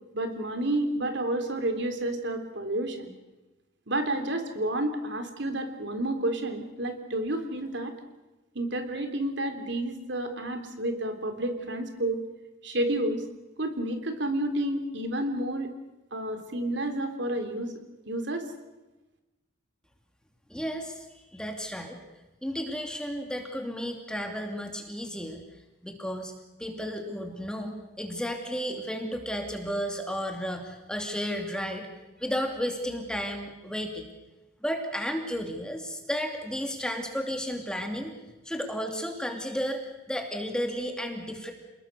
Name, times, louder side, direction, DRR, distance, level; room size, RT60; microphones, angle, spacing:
voice 1, 0.1-3.1 3.9-7.9 8.5-12.2 12.6-13.2 13.6-15.7 16.1-17.7 18.1-18.5, right 1 dB, 65° right, 6 dB, 3.5 m, -30 dB
voice 2, 20.5-22.0 22.4-25.5 25.8-26.3 26.6-31.9 32.2-34.1 34.6-38.1 38.4-41.5, equal, 5° left, 3 dB, 2.6 m, -33 dB
29.0 x 20.5 x 6.8 m, 1.1 s
head